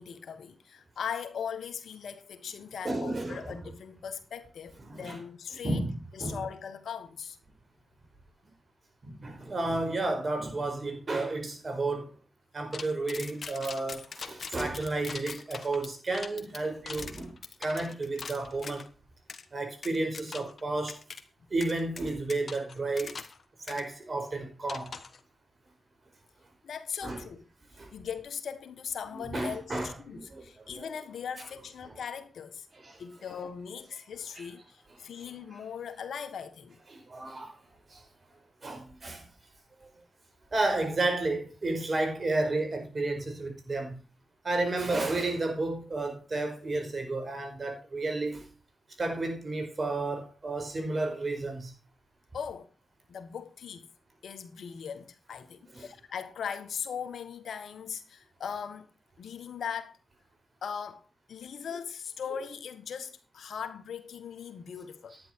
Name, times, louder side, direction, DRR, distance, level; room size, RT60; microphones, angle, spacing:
voice 1, 0.0-5.8 6.1-7.4 26.6-27.5 27.9-32.7 33.0-36.8 52.3-52.7 53.1-53.9 54.2-58.9 59.2-60.0 60.6-65.2, left 7 dB, 80° left, 1.5 m, -39 dB
voice 2, 2.8-3.5 4.9-5.2 5.6-6.4 9.0-12.1 12.5-18.9 19.5-21.0 21.5-23.2 23.7-25.0 27.0-27.2 27.8-27.9 29.1-30.9 32.7-33.0 34.4-34.5 36.9-37.6 37.9-38.1 38.6-39.3 39.8-39.9 40.5-44.0 44.4-48.5 49.0-51.7 55.7-55.9, right 2 dB, 50° right, 5.1 m, -32 dB
sound 1, 12.7-18.9 19.3-19.4 19.8-20.6 20.9-21.2 21.6-23.4 23.7-23.8 24.7-25.2, left 5 dB, 65° left, 1.5 m, -42 dB
11.0 x 9.9 x 4.6 m
supercardioid pair, 45°, 0 cm